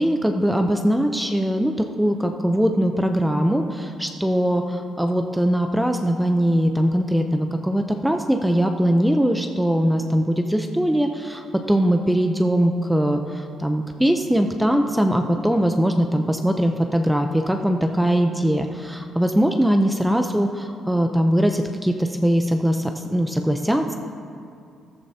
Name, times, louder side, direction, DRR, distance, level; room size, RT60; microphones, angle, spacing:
voice 1, 0.0-23.9, equal, 5° right, 5 dB, 0.6 m, -21 dB
14.0 x 13.5 x 2.8 m, 2.4 s
cardioid pair, 90°, 0 cm